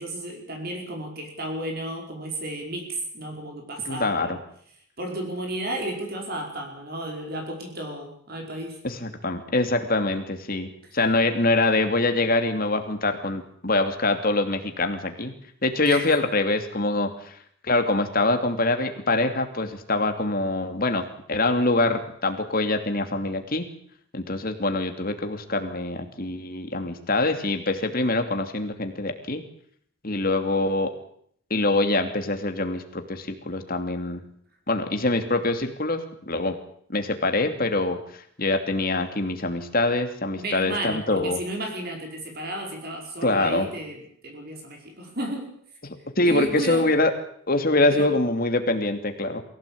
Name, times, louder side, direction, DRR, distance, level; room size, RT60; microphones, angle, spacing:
voice 1, 0.0-4.4 5.0-8.8 10.8-11.0 15.9-16.1 34.8-35.0 40.3-45.5 46.2-46.9 47.9-48.2, right 1 dB, 50° right, 2 dB, 5.0 m, -33 dB
voice 2, 3.8-4.4 8.8-10.7 10.9-15.3 15.6-17.4 17.6-23.7 24.1-29.4 30.0-30.9 31.5-34.2 34.7-36.6 36.9-41.4 43.2-43.7 46.2-47.1 47.5-49.4, left 2 dB, 45° left, 7 dB, 2.8 m, -24 dB
22.5 x 16.5 x 8.7 m, 0.63 s
head